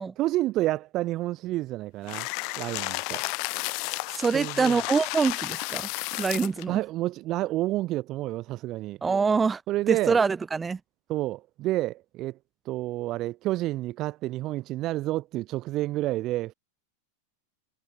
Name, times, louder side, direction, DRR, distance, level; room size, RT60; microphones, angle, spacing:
voice 1, 0.2-2.3 2.6-3.2 4.3-4.8 6.7-9.0 9.7-10.2 11.1-12.4 12.6-16.5, right 16 dB, 35° right, 4.4 m, -29 dB
sound 1, 2.1-6.6, left 36 dB, 45° left, 1.0 m, -32 dB
voice 2, 4.1-5.9 6.2-6.8 9.0-9.6 9.9-10.8, right 5 dB, 15° right, 1.7 m, -25 dB
figure-of-eight pair, 90°, 0 cm